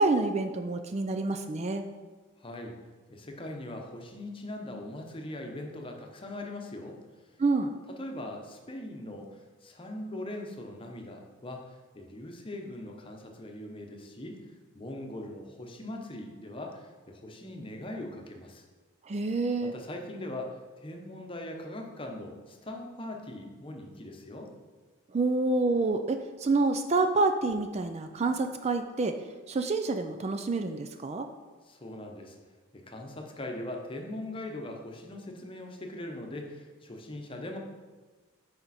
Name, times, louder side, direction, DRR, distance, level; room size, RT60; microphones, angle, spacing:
voice 1, 0.0-1.8 7.4-7.7 19.0-19.7 25.1-29.2 29.5-31.3, right 3 dB, 30° right, 7 dB, 0.4 m, -27 dB
voice 2, 2.4-2.8 3.1-7.0 7.9-14.4 14.7-18.6 19.6-24.5 31.6-32.4 32.7-37.6, left 1 dB, 25° left, 2 dB, 0.9 m, -41 dB
9.1 x 5.1 x 4.2 m, 1.3 s
head